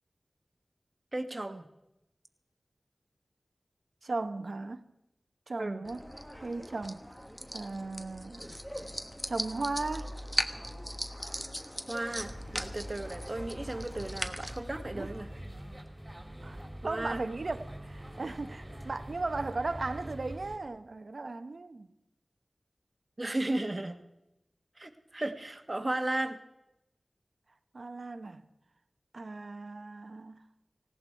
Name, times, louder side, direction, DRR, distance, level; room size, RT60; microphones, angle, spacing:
voice 1, 1.1-1.6 5.6-5.8 11.9-15.3 16.8-17.2 23.2-24.0 24.8-26.4, right 1 dB, 40° right, 1.6 m, -35 dB
voice 2, 4.0-4.8 5.5-6.0 6.4-7.2 7.5-8.5 9.3-10.1 14.9-15.1 16.4-16.6 16.8-21.9 27.7-28.4 29.1-30.4, right 3 dB, 70° right, 1.0 m, -36 dB
sound 1, 5.8-14.6, equal, 5° left, 1.3 m, -39 dB
sound 2, 12.2-20.6, right 1 dB, 20° right, 3.7 m, -44 dB
18.5 x 17.0 x 4.6 m
wide cardioid pair, 45°, 0 cm